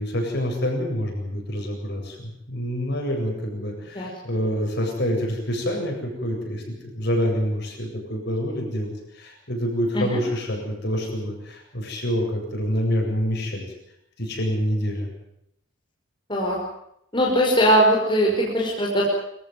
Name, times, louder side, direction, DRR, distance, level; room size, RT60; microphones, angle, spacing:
voice 1, 0.0-13.6 14.2-15.1, equal, 50° left, 1 dB, 8.0 m, -27 dB
voice 2, 17.1-19.0, equal, 20° left, -4 dB, 5.2 m, -20 dB
26.0 x 15.5 x 9.2 m, 0.77 s
head